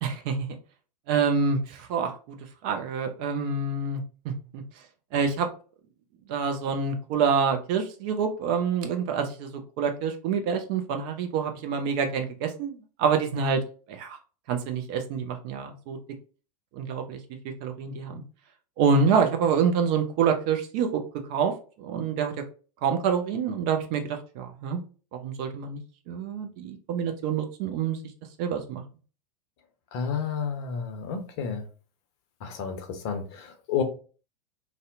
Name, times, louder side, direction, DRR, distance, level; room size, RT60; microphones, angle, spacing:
voice 1, 0.0-0.6 1.1-2.4 2.6-4.6 5.1-5.5 6.3-9.5 9.8-13.6 13.9-14.2 14.5-16.0 16.7-17.2 17.4-18.2 18.8-21.0 21.3-21.5 21.8-22.3 22.8-24.8 25.2-25.8 26.1-28.0 28.4-28.8, right 6 dB, 35° right, 5 dB, 0.4 m, -27 dB
voice 2, 29.9-31.6 32.4-33.8, left 6 dB, 45° left, 5 dB, 0.6 m, -31 dB
2.6 x 2.0 x 2.5 m, 0.37 s
figure-of-eight pair, 95°, 21 cm